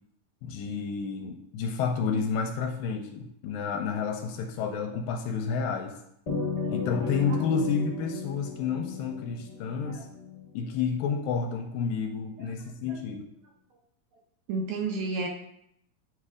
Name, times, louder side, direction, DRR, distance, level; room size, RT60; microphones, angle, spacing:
voice 1, 0.4-6.0 6.7-10.1 10.5-13.2, left 5 dB, 85° left, 4 dB, 2.2 m, -30 dB
sound 1, 6.3-10.9, left 5 dB, 35° left, 2.0 m, -35 dB
voice 2, 14.5-15.3, right 3 dB, 75° right, 2 dB, 1.7 m, -32 dB
9.7 x 3.3 x 4.9 m, 0.75 s
omnidirectional pair, 4.1 m